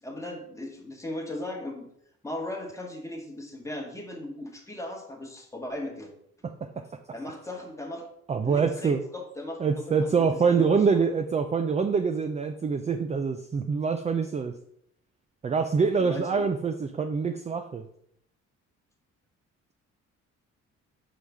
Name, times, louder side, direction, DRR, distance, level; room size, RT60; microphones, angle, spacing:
voice 1, 0.0-1.9 2.2-6.1 7.1-8.1 8.4-10.8 16.0-16.5, left 1 dB, 10° left, 2 dB, 1.2 m, -37 dB
voice 2, 6.4-6.9 8.3-9.0 9.6-14.5 15.4-17.8, right 5 dB, 25° right, 6 dB, 0.4 m, -25 dB
5.6 x 4.9 x 3.4 m, 0.72 s
cardioid pair, 90°, 30 cm